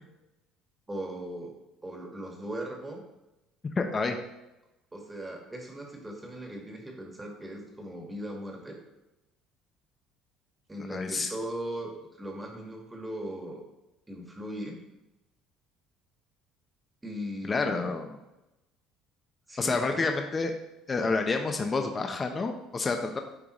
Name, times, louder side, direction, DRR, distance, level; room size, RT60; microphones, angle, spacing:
voice 1, 0.9-1.5 1.8-3.0 4.9-8.8 10.7-13.6 14.1-14.8 17.0-17.9 19.5-20.0, right 1 dB, 15° right, 1 dB, 1.4 m, -38 dB
voice 2, 3.8-4.2 10.9-11.3 17.4-18.2 19.6-20.5 20.9-23.2, left 3 dB, 25° left, 5 dB, 0.6 m, -29 dB
10.0 x 3.6 x 3.0 m, 0.95 s
cardioid pair, 110°, 0 cm